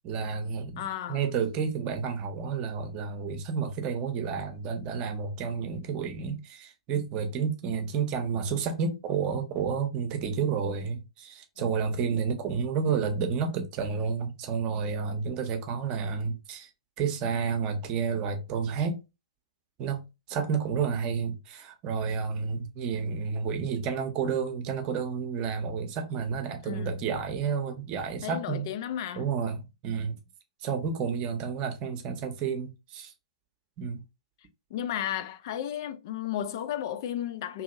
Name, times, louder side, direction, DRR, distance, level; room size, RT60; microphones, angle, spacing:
voice 1, 0.0-16.7 17.0-19.0 19.8-20.0 20.3-28.7 29.2-30.2 30.6-33.1 33.8-34.0, right 6 dB, 30° right, 0.7 m, -30 dB
voice 2, 0.8-1.2 11.6-11.7 26.6-27.0 28.2-29.3 34.7-37.6, left 10 dB, 45° left, 0.4 m, -34 dB
2.7 x 2.7 x 2.5 m
figure-of-eight pair, 115°, 3 cm